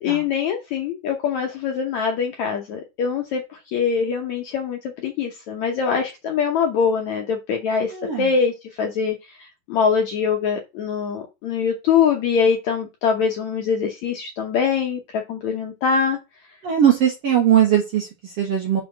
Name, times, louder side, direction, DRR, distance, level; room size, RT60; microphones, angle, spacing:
voice 1, 0.0-3.4 3.7-16.2, left 6 dB, 70° left, 1 dB, 1.8 m, -23 dB
voice 2, 7.9-8.3 16.6-18.8, right 10 dB, 60° right, 0 dB, 1.7 m, -19 dB
5.8 x 4.3 x 6.1 m, 0.25 s
omnidirectional pair, 4.3 m